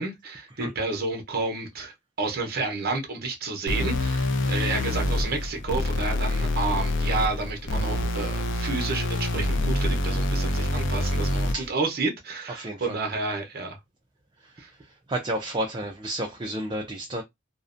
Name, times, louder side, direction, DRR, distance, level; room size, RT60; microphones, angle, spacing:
voice 1, 0.0-13.8 14.6-14.7, right 3 dB, 50° right, 0.8 m, -30 dB
sound 1, 3.7-11.7, left 1 dB, 65° left, 0.5 m, -26 dB
voice 2, 12.6-13.0 15.1-17.2, right 1 dB, 25° right, 0.4 m, -31 dB
2.5 x 2.1 x 2.5 m
head